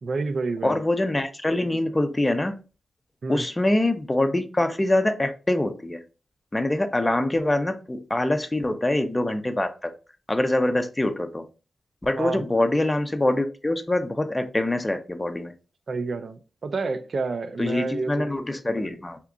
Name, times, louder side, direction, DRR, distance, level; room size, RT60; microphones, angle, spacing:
voice 1, 0.0-0.8 3.2-3.5 12.2-12.4 15.9-18.3, right 3 dB, 60° right, 0.4 m, -29 dB
voice 2, 0.6-2.6 3.3-6.0 6.5-9.9 10.3-11.4 12.0-15.5 17.6-19.2, left 1 dB, 20° left, 0.5 m, -24 dB
2.8 x 2.4 x 3.5 m
cardioid pair, 70°, 0 cm